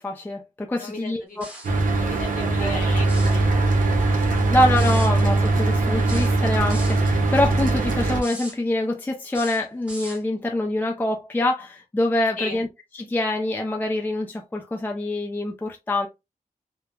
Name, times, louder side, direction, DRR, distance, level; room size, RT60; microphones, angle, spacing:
voice 1, 0.0-1.4 2.6-2.8 4.5-12.7 13.0-16.1, left 1 dB, 15° left, 0.4 m, -25 dB
voice 2, 0.8-1.4 1.9-4.6 12.4-12.6, left 3 dB, 70° left, 1.1 m, -37 dB
sound 1, 1.4-1.8 3.0-3.4 4.7-5.1 6.1-7.0 8.1-8.6 9.3-10.2, equal, 10° right, 1.0 m, -38 dB
Mechanical fan, 1.6-8.2, right 2 dB, 75° right, 0.8 m, -21 dB
3.1 x 2.0 x 2.2 m
wide cardioid pair, 110°, 14 cm